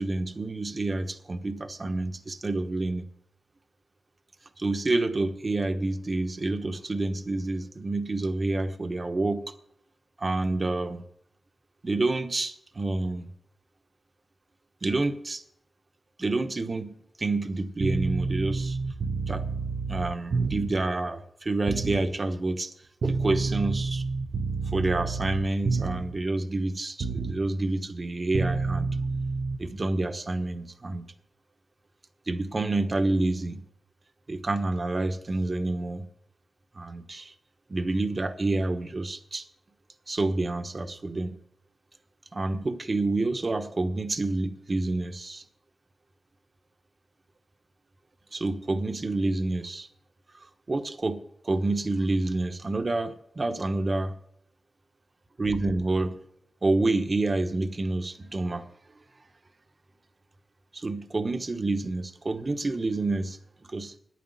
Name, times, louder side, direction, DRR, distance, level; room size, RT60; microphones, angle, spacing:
voice 1, 0.0-3.0 4.6-9.5 10.2-11.0 11.8-13.3 14.8-15.4 16.2-18.8 19.3-19.5 19.9-22.7 23.0-24.0 24.7-28.9 29.6-31.0 32.3-33.6 34.3-36.1 36.7-37.3 37.7-39.4 40.1-41.4 42.3-45.4 48.3-49.9 50.4-54.1 55.4-56.2 56.6-58.7 60.7-63.9, right 2 dB, 40° right, 8 dB, 1.1 m, -28 dB
sound 1, 17.8-20.9 21.7-22.1 23.0-26.2 27.0-27.4 28.3-29.6, right 4 dB, 75° right, 0.9 m, -29 dB
10.0 x 9.5 x 8.1 m, 0.71 s
wide cardioid pair, 80°, 0 cm